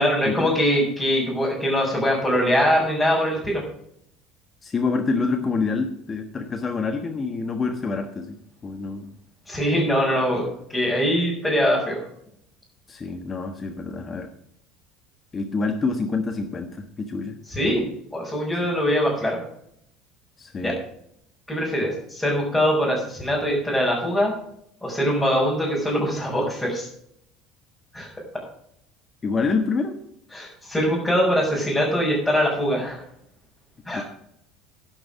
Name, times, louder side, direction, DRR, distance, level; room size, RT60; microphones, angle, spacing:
voice 1, 0.0-3.6 9.5-10.5 10.7-12.0 17.5-17.9 18.1-19.4 20.6-20.7 21.5-24.3 24.8-26.9 27.9-28.1 30.3-33.0 33.9-34.0, equal, 10° left, -6 dB, 5.7 m, -22 dB
voice 2, 4.6-9.1 12.9-14.3 15.3-17.3 20.4-20.8 29.2-30.0 33.9-34.0, left 4 dB, 30° left, 6 dB, 1.3 m, -27 dB
11.0 x 9.1 x 6.2 m, 0.72 s
figure-of-eight pair, 65°, 0 cm